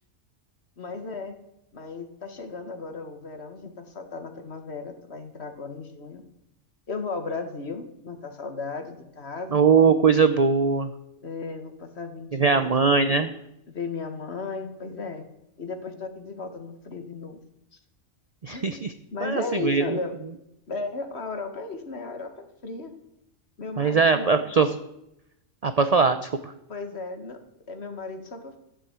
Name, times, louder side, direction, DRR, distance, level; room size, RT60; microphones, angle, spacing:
voice 1, 0.8-1.4 1.7-6.2 6.9-9.6 11.2-12.8 13.0-13.2 13.7-15.3 15.6-17.4 17.7-17.8 18.5-18.9 19.1-20.1 20.7-22.9 23.6-24.5 26.7-27.4 27.7-28.5, left 4 dB, 55° left, 7 dB, 1.8 m, -35 dB
voice 2, 9.5-10.9 12.3-13.3 18.4-18.9 19.2-19.8 23.8-24.7 25.6-26.5, right 5 dB, 40° right, 10 dB, 0.6 m, -21 dB
14.0 x 7.6 x 8.1 m, 0.83 s
omnidirectional pair, 1.4 m